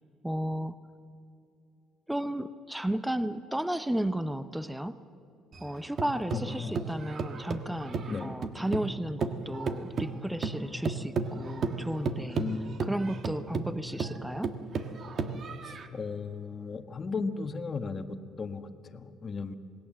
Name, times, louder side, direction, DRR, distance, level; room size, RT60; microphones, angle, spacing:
voice 1, 0.2-0.7 2.1-5.0 5.6-12.4 12.8-14.5, right 1 dB, 5° right, 12 dB, 0.7 m, -33 dB
sound 1, 5.5-8.9 9.2-15.9, right 4 dB, 45° right, 1.6 m, -33 dB
voice 2, 6.3-6.7 8.1-8.3 12.4-12.7 15.6-19.5, left 4 dB, 30° left, 7 dB, 1.4 m, -36 dB
27.0 x 19.0 x 7.6 m, 2.6 s
cardioid pair, 120°, 0 cm